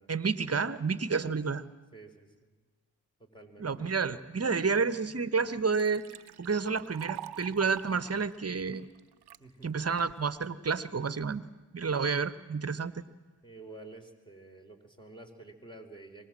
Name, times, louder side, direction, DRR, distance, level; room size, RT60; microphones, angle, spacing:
voice 1, 0.1-1.6 3.6-6.0 6.4-8.9 9.6-11.4 11.7-12.9, right 5 dB, 35° right, 14 dB, 1.4 m, -30 dB
voice 2, 1.9-2.5 3.2-3.9 9.4-9.8 13.4-16.3, right 2 dB, 10° left, 3 dB, 4.6 m, -50 dB
Liquid, 4.9-5.0 5.4-9.4 10.0-10.5, right 12 dB, 75° right, 0.8 m, -46 dB
24.0 x 20.0 x 7.7 m, 1.3 s
supercardioid pair, 45°, 40 cm